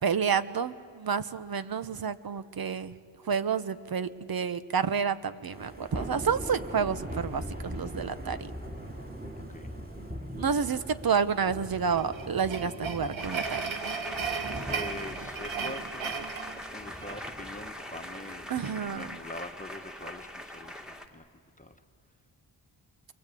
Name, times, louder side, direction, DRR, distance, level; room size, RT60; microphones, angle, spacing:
voice 1, 0.0-2.9 3.3-8.5 10.4-13.6 18.5-19.1, right 6 dB, 50° right, 13 dB, 1.0 m, -29 dB
Thunder / Rain, 5.5-19.5, right 1 dB, 20° right, 3.8 m, -41 dB
voice 2, 9.4-9.7 14.7-16.3 16.7-21.2 21.6-21.8, left 2 dB, 15° left, 5 dB, 1.3 m, -44 dB
sound 1, 11.9-17.4, right 6 dB, 80° right, 1.5 m, -36 dB
sound 2, 13.2-21.1, left 1 dB, ahead, 2.0 m, -42 dB
29.0 x 23.5 x 8.4 m, 2.1 s
cardioid pair, 85°, 46 cm